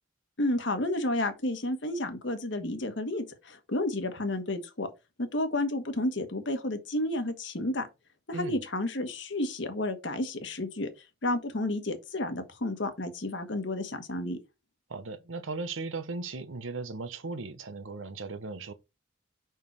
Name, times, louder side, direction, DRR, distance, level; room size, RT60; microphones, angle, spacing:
voice 1, 0.4-4.9 5.2-7.9 8.3-10.9 11.2-14.4, left 1 dB, 65° left, 1.3 m, -31 dB
voice 2, 14.9-18.7, right 3 dB, 80° right, 0.9 m, -37 dB
5.4 x 4.6 x 4.6 m
head